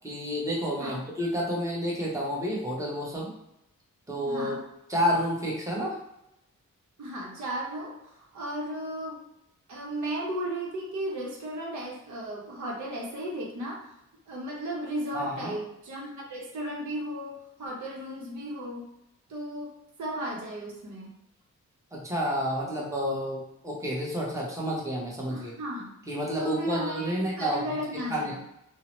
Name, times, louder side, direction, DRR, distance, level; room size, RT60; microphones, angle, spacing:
voice 1, 0.0-3.3 4.1-4.6 4.9-6.0 15.1-15.5 21.9-25.5 26.1-27.8 28.1-28.4, equal, 10° right, -4 dB, 0.9 m, -30 dB
voice 2, 4.2-4.6 7.0-9.2 9.7-13.9 14.3-18.9 19.3-21.1 25.3-25.9 26.4-28.4, right 1 dB, 65° right, -3 dB, 0.8 m, -35 dB
2.7 x 2.0 x 3.0 m, 0.84 s
cardioid pair, 65°, 32 cm